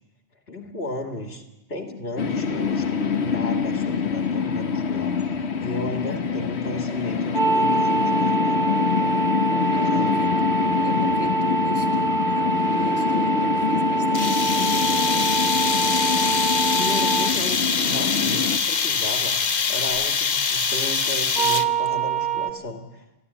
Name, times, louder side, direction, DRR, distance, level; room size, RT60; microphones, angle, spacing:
voice 1, 0.5-1.4 1.7-5.2 5.6-8.6 9.9-10.2 16.6-23.1, left 1 dB, 70° left, 4 dB, 2.7 m, -34 dB
sound 1, 2.2-18.6, left 6 dB, 85° left, 1.4 m, -25 dB
voice 2, 6.0-6.6 9.7-15.3, left 2 dB, 15° left, 1 dB, 1.6 m, -38 dB
sound 2, 7.3-17.3 21.3-22.5, right 3 dB, 45° right, 1.8 m, -24 dB
sound 3, 14.1-21.9, left 5 dB, 45° left, 0.9 m, -24 dB
29.5 x 12.0 x 9.9 m, 1.0 s
omnidirectional pair, 1.1 m